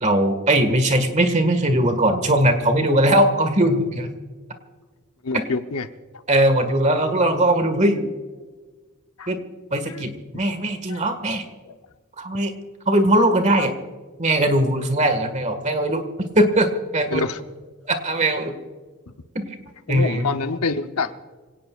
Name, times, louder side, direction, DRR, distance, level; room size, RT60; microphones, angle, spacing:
voice 1, 0.0-4.1 5.3-5.5 6.3-8.1 9.3-9.4 9.7-11.4 12.2-12.5 12.9-13.7 14.2-16.0 16.4-17.2 17.9-18.5 19.4-19.5 19.9-20.3, right 1 dB, 30° right, 8 dB, 1.8 m, -20 dB
voice 2, 5.2-5.9 6.4-6.5 9.2-9.3 9.9-10.0 10.3-10.4 10.9-11.0 11.6-11.7 13.6-13.7 17.1-17.4 19.9-21.2, left 4 dB, 80° left, 8 dB, 0.9 m, -26 dB
26.5 x 17.5 x 2.5 m, 1.4 s
head